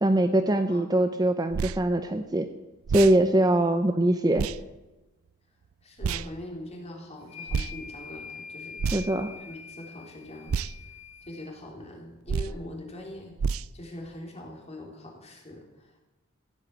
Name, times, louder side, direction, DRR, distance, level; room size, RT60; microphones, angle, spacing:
voice 1, 0.0-2.5 2.9-4.5 8.9-9.3, right 1 dB, 20° right, 8 dB, 0.6 m, -23 dB
sound 1, 1.5-1.8 2.9-3.2 4.4-4.6 6.0-6.3 7.5-7.7 8.8-9.2 10.5-10.7 12.3-12.6 13.4-13.7, right 5 dB, 75° right, 0.4 m, -29 dB
voice 2, 5.8-9.1 9.4-10.6 11.3-16.0, left 1 dB, 30° left, 0 dB, 3.4 m, -43 dB
sound 2, 7.2-11.5, left 6 dB, 85° left, 4.8 m, -44 dB
15.5 x 8.6 x 8.0 m, 1.1 s
head